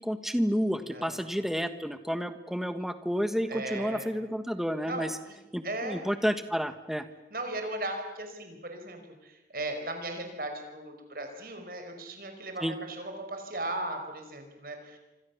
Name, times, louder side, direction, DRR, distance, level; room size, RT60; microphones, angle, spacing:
voice 1, 0.0-5.2 5.5-7.0 12.6-12.8, equal, ahead, 9 dB, 1.4 m, -30 dB
voice 2, 0.9-1.3 3.5-4.1 4.8-5.4 5.6-6.0 7.3-15.0, right 1 dB, 50° right, 5 dB, 5.2 m, -37 dB
27.5 x 25.5 x 7.3 m, 1.1 s
head